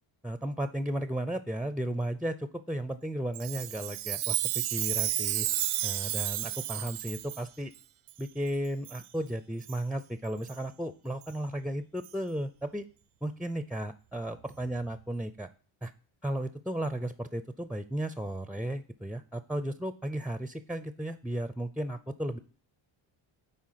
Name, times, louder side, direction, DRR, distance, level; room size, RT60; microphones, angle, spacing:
voice 1, 0.2-5.5 5.8-7.7 8.2-12.9 13.2-15.5 15.8-15.9 16.2-22.4, right 1 dB, ahead, 12 dB, 0.4 m, -34 dB
Chime, 3.3-7.4 8.1-8.2 8.9-9.1 9.6-9.8 10.5-10.6 11.2-11.3 12.0-12.1, right 14 dB, 80° right, 0.6 m, -32 dB
9.8 x 3.7 x 5.7 m, 0.41 s
cardioid pair, 80°, 49 cm